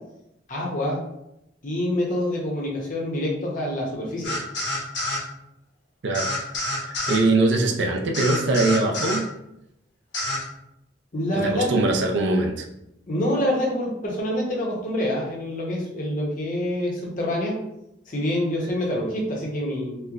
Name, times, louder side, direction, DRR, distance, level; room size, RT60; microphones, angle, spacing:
voice 1, 0.5-1.0 1.6-4.3 11.1-11.9 13.1-17.6 18.1-20.1, left 1 dB, 45° left, -3 dB, 0.8 m, -26 dB
sound 1, 4.2-5.2 6.1-7.2 8.1-9.2 10.1-10.4, left 2 dB, 70° left, 1.0 m, -27 dB
voice 2, 6.8-9.3 11.3-12.7, right 2 dB, 70° right, 3 dB, 0.5 m, -22 dB
4.3 x 2.1 x 2.4 m, 0.84 s
head